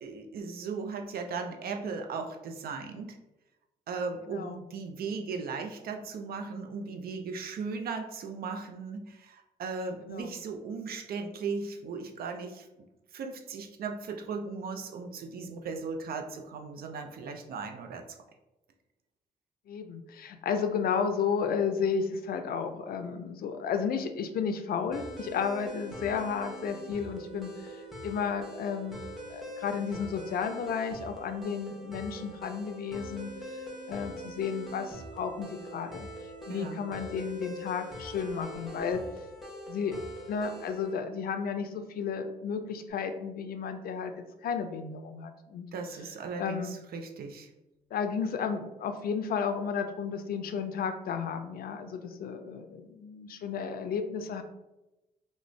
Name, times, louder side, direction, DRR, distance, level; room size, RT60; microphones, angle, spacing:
voice 1, 0.0-3.2 3.9-12.7 13.1-18.0 36.5-36.8 45.7-47.5, right 4 dB, 65° right, 5 dB, 0.4 m, -37 dB
voice 2, 4.3-4.6 10.0-10.3 19.7-29.0 29.3-33.6 33.9-36.1 36.5-39.0 39.7-40.0 40.3-45.7 46.4-46.8 47.9-54.4, left 6 dB, 60° left, 8 dB, 0.4 m, -33 dB
sound 1, 24.9-41.0, equal, ahead, 0.9 m, -43 dB
2.4 x 2.1 x 3.2 m, 0.99 s
supercardioid pair, 45°, 17 cm